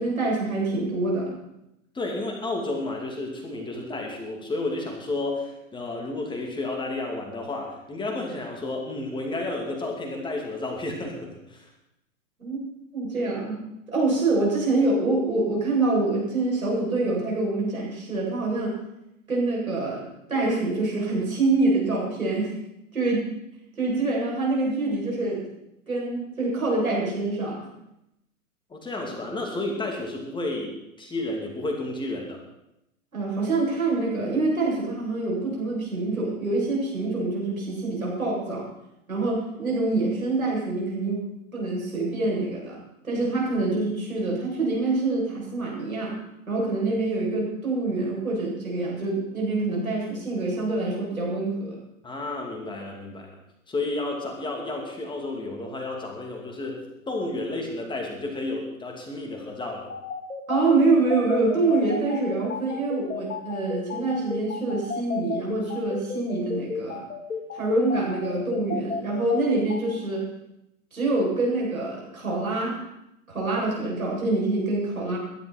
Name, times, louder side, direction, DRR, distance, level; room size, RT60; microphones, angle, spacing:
voice 1, 0.0-1.4 12.4-12.6 12.9-13.6 13.9-18.7 19.3-22.5 22.9-23.2 23.8-25.4 25.9-27.6 33.1-38.7 39.1-42.8 43.0-46.2 46.5-51.8 60.5-67.0 67.5-70.3 70.9-72.8 73.3-75.2, right 2 dB, 80° right, -3 dB, 7.7 m, -25 dB
voice 2, 1.9-11.7 28.7-32.4 52.0-53.3 53.7-59.9, left 2 dB, 10° left, 0 dB, 2.7 m, -31 dB
sound 1, 59.9-69.8, left 5 dB, 75° left, 2.0 m, -32 dB
21.5 x 11.5 x 4.5 m, 0.84 s
figure-of-eight pair, 110°, 41 cm